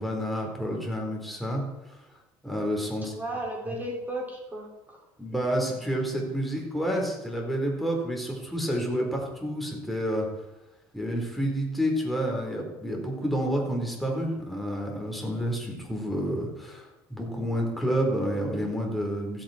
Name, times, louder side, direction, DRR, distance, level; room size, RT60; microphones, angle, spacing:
voice 1, 0.0-1.6 1.9-2.0 2.4-3.1 3.7-3.8 5.2-10.3 10.9-19.4, equal, ahead, -1 dB, 4.5 m, -29 dB
voice 2, 3.0-5.0, right 1 dB, 15° right, -2 dB, 5.6 m, -35 dB
15.5 x 9.0 x 4.6 m, 1.0 s
supercardioid pair, 90°, 10 cm